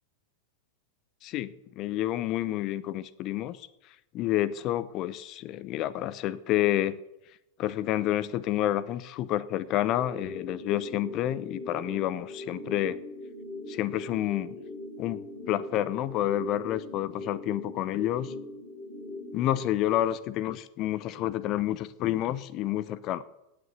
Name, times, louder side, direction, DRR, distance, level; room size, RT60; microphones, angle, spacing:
voice 1, 1.2-3.7 4.1-7.0 7.6-13.0 13.7-14.5 15.0-15.2 15.5-18.3 19.3-23.2, left 13 dB, 40° left, 18 dB, 0.7 m, -29 dB
sound 1, 10.0-20.0, left 1 dB, 5° left, 3.9 m, -41 dB
17.5 x 6.9 x 8.0 m, 0.91 s
figure-of-eight pair, 90°, 0 cm